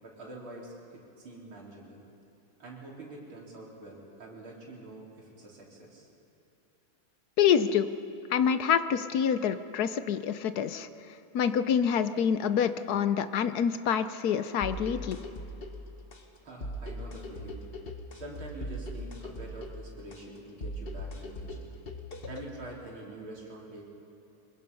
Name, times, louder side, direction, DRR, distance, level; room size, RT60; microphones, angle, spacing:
voice 1, 0.0-2.0 2.6-6.1 16.4-17.7 18.1-21.7 22.3-23.8, right 2 dB, 80° right, -3 dB, 4.5 m, -45 dB
voice 2, 7.4-7.9 8.3-10.9 11.3-15.2, left 8 dB, 60° left, 12 dB, 1.1 m, -26 dB
sound 1, 14.6-22.6, equal, 30° left, 1.3 m, -40 dB
25.0 x 21.5 x 5.5 m, 3.0 s
omnidirectional pair, 2.2 m